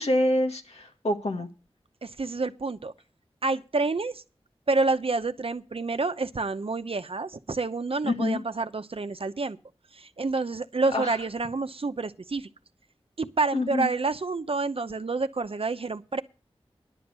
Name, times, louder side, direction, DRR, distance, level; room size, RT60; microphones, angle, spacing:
voice 1, 0.0-1.5 8.0-8.4 10.9-11.2 13.5-13.9, left 1 dB, 80° left, 1.9 m, -26 dB
voice 2, 2.0-2.9 3.4-4.2 4.7-9.6 9.9-12.5 13.2-16.2, right 3 dB, 65° right, 0.8 m, -28 dB
11.0 x 7.9 x 6.7 m
wide cardioid pair, 60°, 11 cm